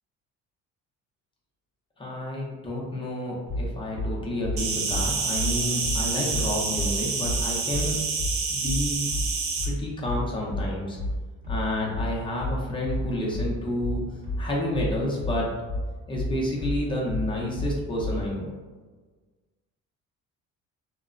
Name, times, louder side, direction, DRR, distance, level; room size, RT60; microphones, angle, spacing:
voice 1, 2.0-8.0 8.5-9.0 9.6-11.0 11.5-14.0 14.4-15.5 16.1-18.5, left 1 dB, 15° left, -4 dB, 0.5 m, -30 dB
sound 1, 3.5-18.3, left 1 dB, 30° right, 0.9 m, -30 dB
Insect, 4.6-9.7, right 4 dB, 50° right, 0.5 m, -28 dB
2.9 x 2.1 x 2.4 m, 1.4 s
cardioid pair, 145°, 31 cm